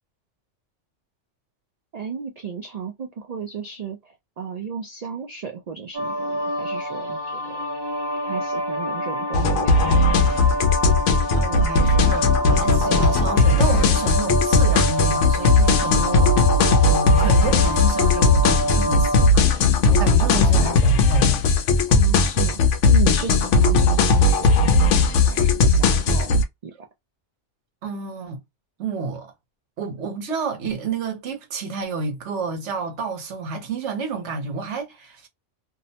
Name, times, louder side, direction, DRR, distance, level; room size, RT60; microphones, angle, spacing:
voice 1, 1.9-7.6 8.2-10.1 21.9-22.6 22.9-26.7, right 6 dB, 85° right, 0.3 m, -34 dB
sound 1, 5.9-19.3, equal, 30° right, 0.5 m, -27 dB
sound 2, 9.3-26.4, left 3 dB, 80° left, 0.9 m, -17 dB
voice 2, 11.4-21.4 27.8-28.4 28.8-29.3 29.8-35.3, right 4 dB, 70° right, 1.1 m, -30 dB
2.7 x 2.0 x 2.7 m
omnidirectional pair, 1.2 m